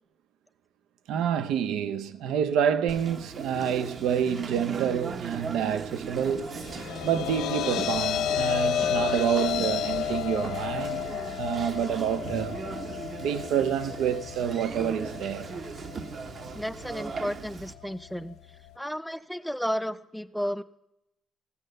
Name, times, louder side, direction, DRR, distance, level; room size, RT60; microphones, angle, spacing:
voice 1, 1.1-6.5 7.0-11.0 11.4-12.6 13.2-15.5, right 8 dB, 85° right, 0.6 m, -28 dB
Conversation, 2.9-17.7, right 5 dB, 50° right, 0.9 m, -38 dB
sound 1, 6.4-18.8, left 10 dB, 85° left, 0.5 m, -33 dB
voice 2, 16.5-18.4 18.8-20.6, equal, ahead, 0.6 m, -32 dB
15.5 x 6.5 x 6.6 m
cardioid pair, 90°, 0 cm